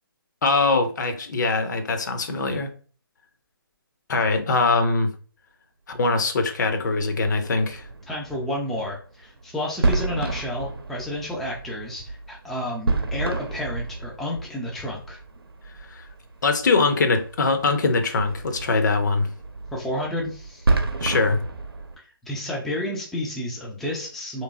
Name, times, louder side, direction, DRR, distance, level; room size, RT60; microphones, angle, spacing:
voice 1, 0.4-2.7 4.1-5.1 5.9-7.8 15.9-16.0 16.4-19.3 21.0-21.4, left 3 dB, 50° left, 0.6 m, -22 dB
sound 1, 6.8-22.0, right 3 dB, 85° right, 0.7 m, -30 dB
voice 2, 8.1-15.2 19.7-20.7 22.0-24.4, left 1 dB, ahead, 0.3 m, -31 dB
3.2 x 3.0 x 2.5 m
figure-of-eight pair, 145°, 12 cm